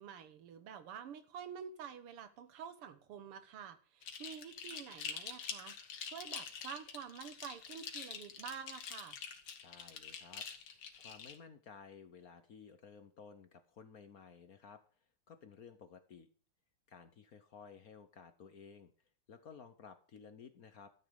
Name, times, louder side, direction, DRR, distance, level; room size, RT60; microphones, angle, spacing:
voice 1, 0.0-5.8 6.1-9.2, right 8 dB, 85° right, 12 dB, 2.1 m, -48 dB
sound 1, 4.0-11.4, left 7 dB, 85° left, 2.4 m, -46 dB
voice 2, 9.6-10.5 11.0-16.3 16.9-20.9, left 6 dB, 55° left, 10 dB, 1.2 m, -55 dB
13.0 x 8.2 x 5.2 m, 0.42 s
omnidirectional pair, 2.4 m